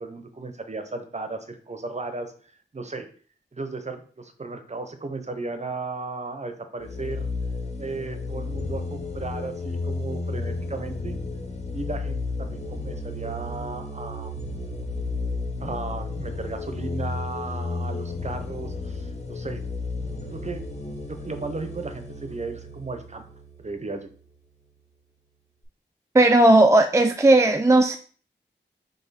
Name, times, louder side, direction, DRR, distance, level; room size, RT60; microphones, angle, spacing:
voice 1, 0.0-2.3 2.7-3.1 3.5-7.3 7.8-11.2 11.7-14.3 15.6-19.6 20.3-20.6 21.1-23.3 23.6-24.1, right 3 dB, 35° right, 7 dB, 0.8 m, -35 dB
sound 1, 6.8-24.2, left 3 dB, 35° left, 0.9 m, -33 dB
voice 2, 26.1-28.0, right 2 dB, 15° right, 6 dB, 0.4 m, -16 dB
3.6 x 3.5 x 4.1 m, 0.44 s
wide cardioid pair, 70°, 19 cm